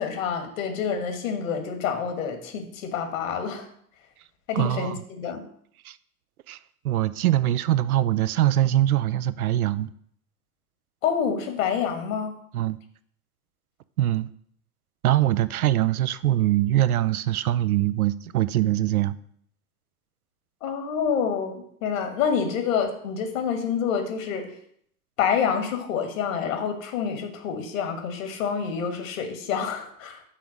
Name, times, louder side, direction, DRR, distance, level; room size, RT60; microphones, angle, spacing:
voice 1, 0.0-3.7 4.5-5.4 11.0-12.4 20.6-24.5 25.2-30.2, left 7 dB, 60° left, 5 dB, 1.5 m, -27 dB
voice 2, 4.5-5.0 5.8-6.0 6.5-6.6 6.8-9.9 12.5-12.8 14.0-14.3 15.0-19.2, right 13 dB, 70° right, 15 dB, 0.5 m, -23 dB
5.8 x 3.9 x 6.2 m, 0.65 s
figure-of-eight pair, 90°, 45 cm